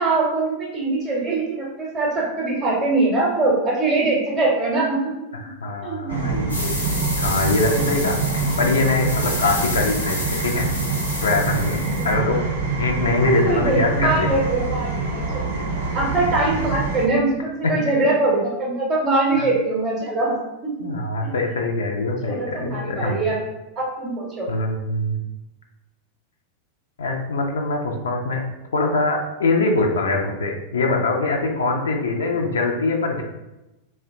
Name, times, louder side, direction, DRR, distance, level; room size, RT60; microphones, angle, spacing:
voice 1, 0.0-5.1 5.8-6.2 11.8-12.1 13.2-15.4 15.9-20.3 20.6-20.7 22.2-23.4 23.8-24.5, right 2 dB, 20° right, -5 dB, 0.6 m, -22 dB
voice 2, 5.4-6.7 7.2-10.7 11.2-12.5 12.8-14.3 17.6-17.7 19.4-19.5 20.8-23.2 24.5-25.2 27.0-28.4 28.7-33.2, left 3 dB, 65° left, 2 dB, 0.3 m, -23 dB
sound 1, 6.1-17.1, right 3 dB, 70° right, 0.5 m, -25 dB
sound 2, 6.5-12.1, left 1 dB, 80° left, 0.7 m, -30 dB
2.7 x 2.1 x 2.5 m, 0.98 s
figure-of-eight pair, 90°, 0 cm